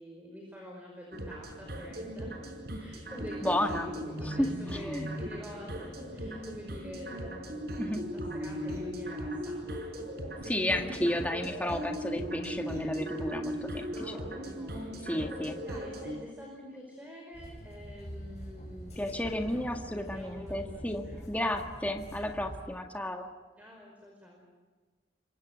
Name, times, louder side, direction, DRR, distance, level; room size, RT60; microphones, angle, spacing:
voice 1, 0.0-10.5 13.9-21.3 23.6-24.4, equal, 10° right, 0 dB, 5.1 m, -47 dB
sound 1, 1.1-16.2, equal, 60° right, 5.4 m, -38 dB
voice 2, 3.4-3.9 4.2-5.1 7.8-8.0 10.5-14.2 15.0-15.6 19.0-23.3, left 1 dB, 10° left, 3 dB, 1.9 m, -32 dB
sound 2, 17.3-22.6, equal, 40° left, 7.2 m, -45 dB
27.5 x 24.0 x 6.4 m, 1.4 s
head